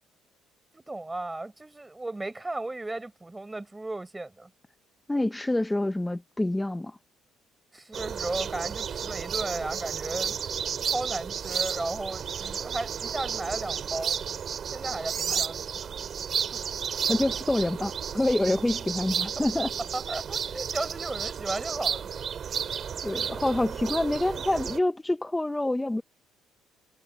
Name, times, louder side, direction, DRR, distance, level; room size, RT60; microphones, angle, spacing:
voice 1, 0.7-4.5 7.7-10.4 10.8-14.2 14.7-16.0 16.5-16.6 16.9-17.0 19.9-22.1, right 2 dB, 10° right, 5.5 m, -35 dB
voice 2, 5.1-7.0 15.3-15.4 17.1-19.7 23.0-26.0, left 1 dB, 10° left, 0.6 m, -27 dB
sound 1, 7.9-24.8, right 7 dB, 45° right, 2.4 m, -32 dB
cardioid pair, 125°, 0 cm